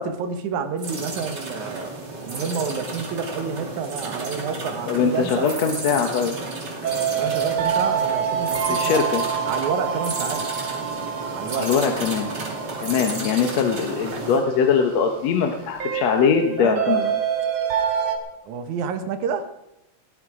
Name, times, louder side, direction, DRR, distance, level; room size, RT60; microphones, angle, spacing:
voice 1, 0.0-1.9 2.2-5.7 7.2-9.0 9.5-10.5 11.3-11.7 16.6-17.2 18.4-19.5, right 6 dB, 85° right, 9 dB, 2.6 m, -29 dB
sound 1, 0.8-14.4, right 2 dB, 35° right, 3.1 m, -33 dB
voice 2, 4.9-6.3 8.7-9.2 11.6-12.3 12.8-17.0, left 6 dB, 70° left, 4 dB, 2.2 m, -21 dB
sound 2, 6.8-18.2, right 7 dB, 65° right, 2.9 m, -27 dB
19.5 x 12.0 x 4.9 m, 0.90 s
omnidirectional pair, 3.3 m